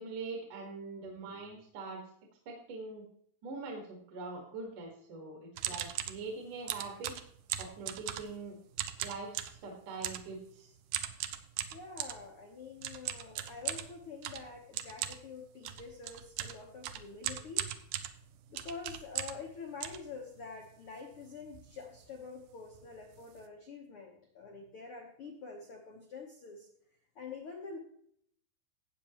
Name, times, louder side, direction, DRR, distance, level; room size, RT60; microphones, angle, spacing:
voice 1, 0.0-2.0 2.5-3.1 3.4-7.2 7.6-8.6 9.0-10.7, right 3 dB, 60° right, 0 dB, 3.1 m, -43 dB
sound 1, 5.6-6.2 6.7-8.4 8.7-9.6 10.0-10.3 10.9-12.2 12.8-19.5 19.8-20.7 21.1-21.2 21.4-21.7 22.0-22.2 22.8-22.9 23.1-23.4, right 11 dB, 75° right, 1.9 m, -38 dB
voice 2, 11.7-17.6 18.5-26.7 27.1-27.8, left 5 dB, 85° left, 1 dB, 1.2 m, -46 dB
14.5 x 8.6 x 3.0 m, 0.65 s
omnidirectional pair, 4.2 m